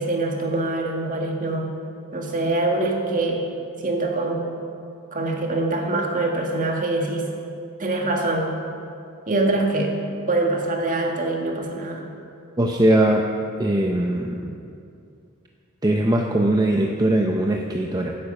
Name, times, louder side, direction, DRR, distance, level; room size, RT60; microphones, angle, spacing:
voice 1, 0.0-1.7 2.1-3.5 3.8-4.5 5.1-7.3 7.8-8.5 9.3-9.9 10.3-12.1, right 2 dB, 40° right, 1 dB, 1.8 m, -24 dB
voice 2, 12.6-13.3 13.6-14.6 15.8-18.2, right 1 dB, 20° right, 1 dB, 0.7 m, -20 dB
16.0 x 9.5 x 5.4 m, 2.5 s
head